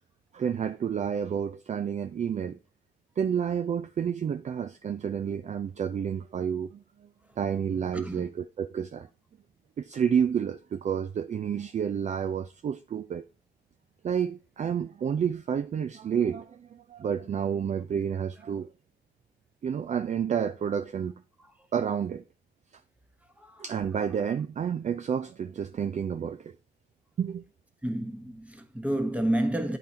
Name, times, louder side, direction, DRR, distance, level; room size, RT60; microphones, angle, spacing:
voice 1, 0.3-2.6 3.2-6.8 7.4-9.1 9.8-13.2 14.0-18.7 19.6-21.2 21.7-22.2 23.6-26.5 27.2-27.4, right 8 dB, 35° right, 0.4 m, -30 dB
voice 2, 27.8-29.8, right 1 dB, 5° right, 1.2 m, -30 dB
8.9 x 3.9 x 4.1 m
cardioid pair, 90°, 20 cm